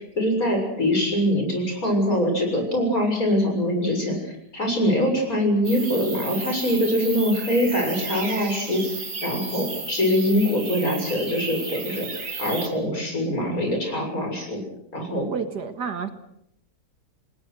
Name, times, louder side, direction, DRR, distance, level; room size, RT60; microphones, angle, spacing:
voice 1, 0.2-8.8 9.2-12.1 12.4-14.6 14.9-15.3, equal, 55° left, 3 dB, 7.3 m, -23 dB
sound 1, 5.6-12.7, right 4 dB, 50° right, 2.7 m, -34 dB
voice 2, 15.3-16.1, right 6 dB, 75° right, 7 dB, 2.4 m, -30 dB
29.5 x 19.5 x 6.3 m, 0.77 s
omnidirectional pair, 1.8 m